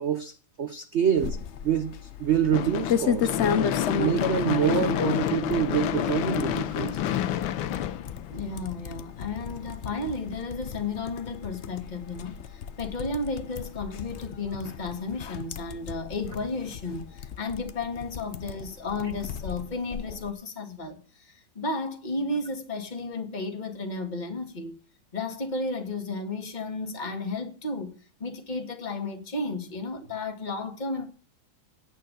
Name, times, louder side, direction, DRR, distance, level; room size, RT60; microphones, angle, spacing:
voice 1, 0.0-3.4 4.0-7.0, right 9 dB, 60° right, 0.7 m, -26 dB
sound 1, 1.2-20.3, left 7 dB, 60° left, 0.7 m, -34 dB
Gunshot gunfire / Fireworks, 2.5-8.8, left 11 dB, 85° left, 1.6 m, -29 dB
voice 2, 8.3-24.8 25.1-31.1, left 3 dB, 25° left, 2.0 m, -33 dB
9.2 x 8.2 x 9.0 m
omnidirectional pair, 2.2 m